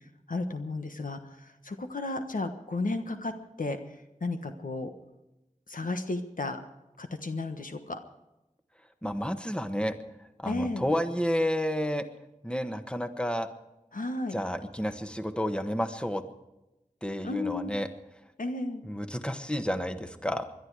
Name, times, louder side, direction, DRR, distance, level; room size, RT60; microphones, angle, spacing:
voice 1, 0.3-3.3 3.6-3.8 4.2-4.9 5.7-6.6 7.0-8.0 10.4-10.9 13.9-14.4 17.2-17.8 18.4-18.8, left 2 dB, 90° left, 7 dB, 1.3 m, -33 dB
voice 2, 9.0-9.9 10.4-12.0 12.4-13.5 14.3-16.2 17.0-17.9 18.8-20.4, equal, 5° left, 9 dB, 1.4 m, -30 dB
21.5 x 12.0 x 4.8 m, 0.95 s
wide cardioid pair, 40°, 13 cm